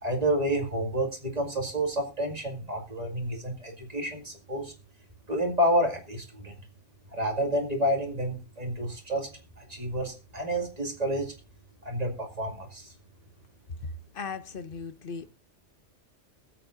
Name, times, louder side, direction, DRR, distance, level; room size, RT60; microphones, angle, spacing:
voice 1, 0.0-4.7 5.3-6.5 7.1-9.3 9.6-11.3 11.8-12.9, right 1 dB, 35° right, 2.3 m, -29 dB
voice 2, 13.8-15.3, left 4 dB, 55° left, 1.0 m, -38 dB
21.5 x 8.1 x 2.6 m
omnidirectional pair, 1.2 m